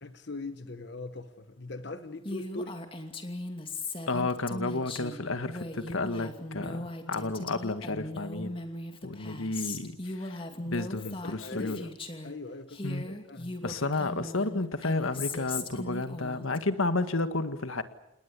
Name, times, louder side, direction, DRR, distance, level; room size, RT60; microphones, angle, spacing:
voice 1, 0.0-2.8 11.1-11.9 12.2-13.5, left 2 dB, 55° left, 1.2 m, -41 dB
Female speech woman speaking, 2.2-12.3 12.7-16.6, left 2 dB, 25° left, 2.6 m, -38 dB
voice 2, 4.1-8.6 9.0-11.8 12.8-13.1 13.6-17.8, left 2 dB, 85° left, 1.7 m, -32 dB
29.5 x 19.5 x 8.4 m
head